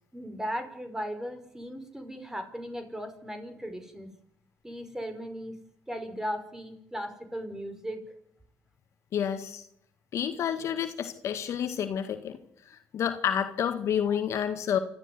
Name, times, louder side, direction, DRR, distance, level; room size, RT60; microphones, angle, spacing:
voice 1, 0.1-4.1 4.6-5.5 5.9-8.0 14.1-14.2, equal, 10° right, 7 dB, 5.3 m, -37 dB
voice 2, 9.1-9.6 10.1-12.4 12.7-14.8, left 9 dB, 65° left, 8 dB, 1.8 m, -29 dB
28.0 x 13.5 x 9.8 m, 0.77 s
supercardioid pair, 60°, 5 cm